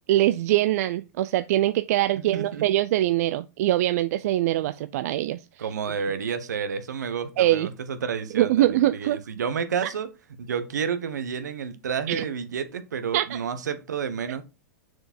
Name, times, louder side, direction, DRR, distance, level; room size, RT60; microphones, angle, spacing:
voice 1, 0.1-5.6 7.4-7.7 8.3-9.2 12.1-12.2 13.1-13.4, right 14 dB, 65° right, 0.4 m, -23 dB
voice 2, 2.3-2.6 5.6-10.1 10.4-14.4, right 6 dB, 85° right, 1.1 m, -30 dB
6.5 x 4.7 x 4.3 m
hypercardioid pair, 115°, 9 cm